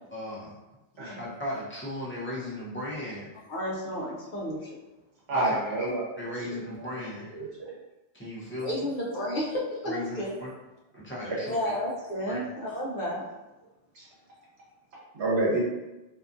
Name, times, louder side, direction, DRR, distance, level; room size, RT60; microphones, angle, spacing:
voice 1, 0.1-0.6 1.2-3.3 5.3-5.6 6.2-7.3 8.1-8.8 9.9-10.5 10.9-11.5 12.3-12.4, left 1 dB, 15° left, -7 dB, 0.5 m, -36 dB
voice 2, 0.9-1.3 3.5-4.8 8.6-10.3 11.4-13.3, equal, 55° left, -4 dB, 0.7 m, -32 dB
voice 3, 5.3-6.3 7.3-7.7 11.3-11.4 14.0-14.1 15.1-15.6, right 2 dB, 75° right, -6 dB, 1.2 m, -28 dB
2.8 x 2.4 x 2.5 m, 1.0 s
omnidirectional pair, 1.1 m